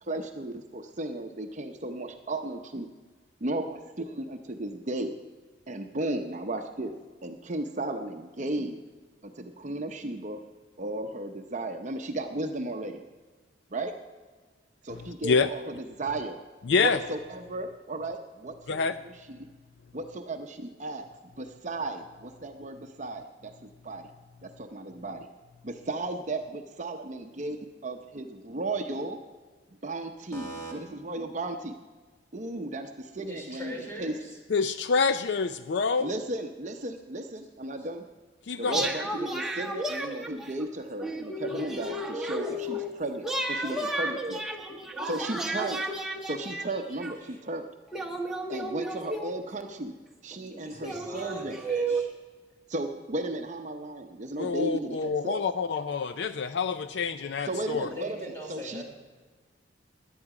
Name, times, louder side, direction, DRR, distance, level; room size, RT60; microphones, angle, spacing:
voice 1, 0.0-2.9 3.4-5.1 5.7-6.9 7.2-8.8 9.2-10.4 10.8-13.0 13.7-13.9 14.8-16.4 16.8-19.4 19.9-21.1 21.4-24.1 24.4-25.3 25.6-29.2 29.8-31.8 32.3-34.1 36.0-38.1 38.6-44.4 45.0-45.8 46.3-47.6 48.5-49.9 50.2-51.6 52.7-55.4 57.4-58.8, right 2 dB, 40° right, 5 dB, 0.7 m, -35 dB
voice 2, 14.9-15.5 16.7-17.0 18.7-19.0 34.5-36.1 38.5-38.8 54.4-57.9, left 5 dB, 65° left, 12 dB, 0.4 m, -27 dB
voice 3, 30.3-30.7 33.1-34.4 37.8-37.9 47.2-47.4 50.5-52.1 57.9-58.8, equal, 15° left, 0 dB, 3.5 m, -41 dB
sound 1, 38.6-40.6 41.0-42.9 43.2-47.1 47.9-49.6 50.3-50.4 50.8-52.0, right 1 dB, 5° right, 1.0 m, -33 dB
17.0 x 11.0 x 4.9 m, 1.4 s
head